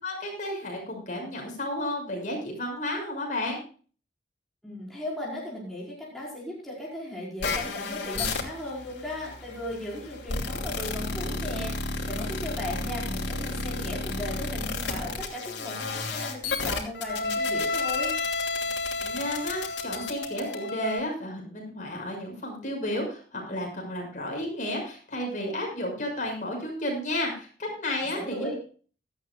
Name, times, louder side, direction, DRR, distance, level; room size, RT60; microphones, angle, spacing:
voice 1, 0.0-3.6 19.0-28.5, left 1 dB, 45° left, 1 dB, 6.2 m, -32 dB
voice 2, 4.6-18.1 28.1-28.6, left 1 dB, ahead, -6 dB, 4.9 m, -37 dB
sound 1, 7.4-21.0, left 3 dB, 90° left, 2.8 m, -31 dB
17.0 x 13.5 x 2.4 m, 0.40 s
head